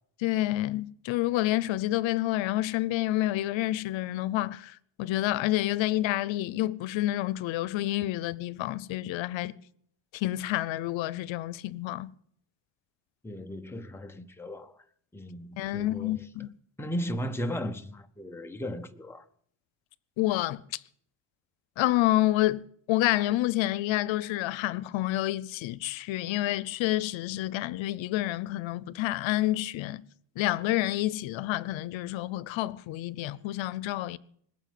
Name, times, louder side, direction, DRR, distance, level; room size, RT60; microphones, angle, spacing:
voice 1, 0.2-9.5 10.1-12.1 15.6-16.5 20.2-20.8 21.8-30.0 30.4-34.2, left 15 dB, 75° left, 0.8 m, -28 dB
voice 2, 13.2-14.7 15.1-16.1 16.8-19.2, equal, 5° left, 0.6 m, -36 dB
20.0 x 7.4 x 9.2 m
cardioid pair, 170°, 46 cm